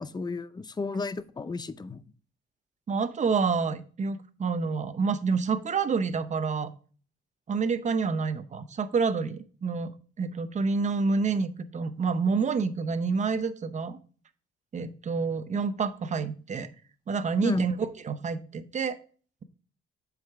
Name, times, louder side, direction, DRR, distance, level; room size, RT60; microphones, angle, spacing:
voice 1, 0.0-2.0 17.4-17.7, left 3 dB, 20° left, 14 dB, 0.5 m, -32 dB
voice 2, 2.9-6.7 7.5-9.9 10.2-14.0 14.7-16.7 17.1-19.0, right 5 dB, 35° right, 11 dB, 0.7 m, -28 dB
7.7 x 5.0 x 3.5 m, 0.40 s
cardioid pair, 90°, 20 cm